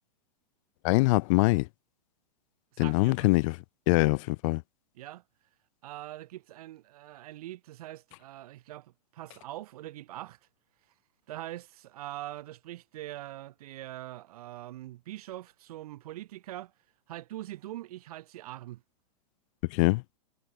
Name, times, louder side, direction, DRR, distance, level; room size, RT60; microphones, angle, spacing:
voice 1, 0.8-1.7 2.8-3.6 3.9-4.6 19.7-20.0, left 25 dB, 50° left, 1.1 m, -23 dB
voice 2, 2.7-3.3 4.9-5.2 5.8-10.4 11.3-16.7 17.1-18.8, right 15 dB, 65° right, 2.7 m, -43 dB
hypercardioid pair, 120°, 21 cm